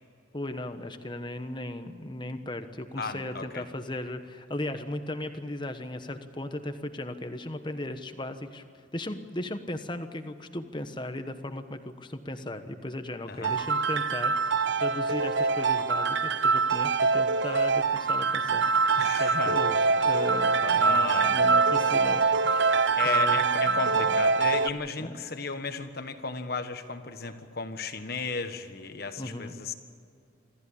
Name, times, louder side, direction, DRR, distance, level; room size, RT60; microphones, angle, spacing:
voice 1, 0.3-8.6 8.9-24.2 25.0-25.1 29.2-29.7, left 1 dB, 25° left, 8 dB, 1.2 m, -37 dB
voice 2, 3.0-3.7 13.3-13.6 18.9-19.6 20.7-21.4 22.9-29.7, left 4 dB, 50° left, 8 dB, 1.5 m, -34 dB
sound 1, 13.4-24.7, right 4 dB, 65° right, 0.7 m, -24 dB
26.5 x 14.0 x 8.6 m, 2.4 s
head